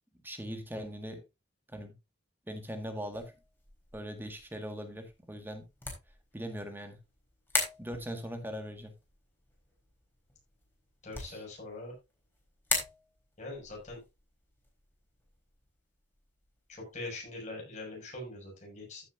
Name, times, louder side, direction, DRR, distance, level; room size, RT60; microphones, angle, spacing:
voice 1, 0.2-1.2 1.7-1.9 2.5-3.3 3.9-5.7 6.3-7.0 7.8-8.9 11.2-11.4, equal, 10° right, 1.7 m, -40 dB
sound 1, 3.1-17.3, left 2 dB, 10° left, 3.9 m, -42 dB
voice 2, 11.0-11.9 13.4-14.0 16.7-19.0, left 2 dB, 40° left, 6.5 m, -42 dB
15.0 x 7.2 x 2.6 m
head